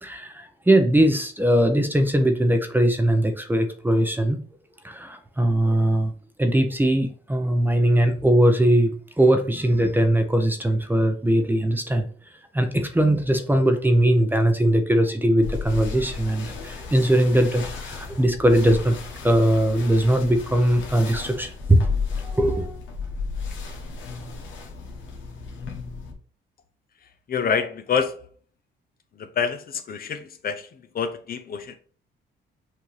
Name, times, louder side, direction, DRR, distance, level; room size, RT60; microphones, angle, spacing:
voice 1, 0.0-4.4 4.8-6.1 6.4-8.9 9.2-12.1 12.5-19.0 19.2-21.9 22.2-22.8, right 1 dB, 10° right, 0.7 m, -20 dB
sound 1, 15.4-26.1, left 5 dB, 75° left, 1.1 m, -34 dB
voice 2, 27.3-28.3 29.1-31.8, left 6 dB, 50° left, 0.6 m, -27 dB
6.1 x 2.7 x 3.2 m
cardioid pair, 90°, 20 cm